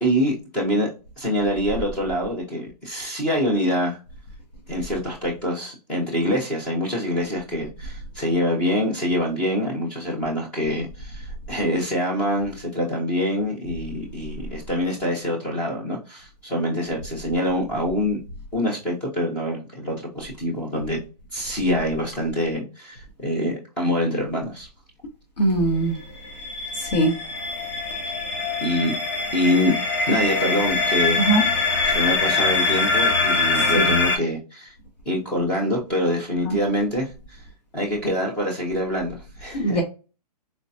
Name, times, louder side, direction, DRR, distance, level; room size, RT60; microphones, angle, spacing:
voice 1, 0.0-0.9 1.2-4.0 4.7-18.2 18.5-21.0 21.3-24.7 28.6-29.0 29.3-29.7 30.1-31.2 31.9-34.7 35.1-37.1 37.7-39.8, equal, 5° left, 0.3 m, -25 dB
voice 2, 25.4-26.0 26.8-27.1 31.2-31.4 33.7-33.9 36.4-36.6 39.5-39.8, right 1 dB, 85° left, 1.1 m, -21 dB
sound 1, 26.0-34.2, left 3 dB, 45° left, 0.9 m, -23 dB
3.9 x 2.1 x 2.6 m
hypercardioid pair, 165°, 21 cm